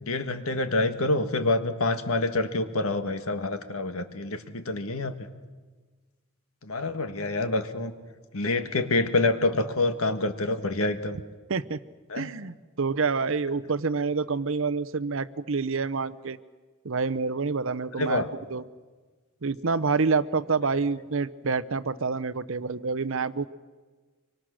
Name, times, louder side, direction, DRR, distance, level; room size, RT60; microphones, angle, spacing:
voice 1, 0.0-5.2 6.6-7.9 8.3-11.2 12.1-12.3 18.0-18.3, left 2 dB, 75° left, 8 dB, 1.5 m, -27 dB
voice 2, 12.2-16.4 16.8-18.6 19.4-23.5, right 4 dB, 60° right, 14 dB, 0.7 m, -27 dB
25.0 x 24.5 x 6.4 m, 1.4 s
head